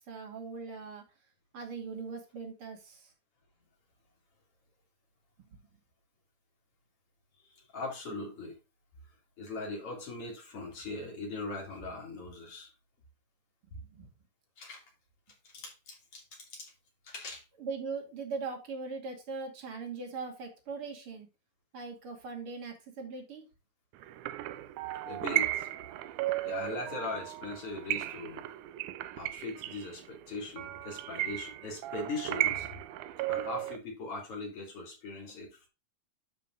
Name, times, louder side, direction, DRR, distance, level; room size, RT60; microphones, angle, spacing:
voice 1, 0.1-1.0 1.5-3.1 5.4-5.6 13.6-14.1 17.6-21.3 21.7-23.5, right 4 dB, 45° right, 3 dB, 2.9 m, -40 dB
voice 2, 7.5-8.6 9.4-12.7 14.6-14.8 15.4-16.7 17.0-17.4 25.0-25.7 26.4-28.4 29.2-32.7 33.3-35.7, left 3 dB, 45° left, 1 dB, 3.5 m, -40 dB
sound 1, 24.0-33.8, right 15 dB, 80° right, 2.0 m, -35 dB
12.0 x 5.8 x 2.5 m, 0.29 s
omnidirectional pair, 3.7 m